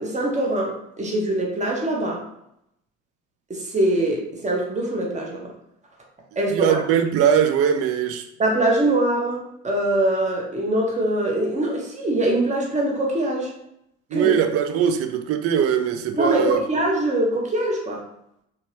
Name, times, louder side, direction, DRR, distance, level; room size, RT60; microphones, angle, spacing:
voice 1, 0.0-2.2 3.5-5.5 6.4-6.8 8.4-13.5 14.1-14.3 16.1-18.0, right 1 dB, 15° right, 1.2 m, -23 dB
voice 2, 6.5-8.3 14.1-16.6, right 8 dB, 35° right, 0.5 m, -21 dB
4.2 x 3.0 x 3.0 m
figure-of-eight pair, 65°, 42 cm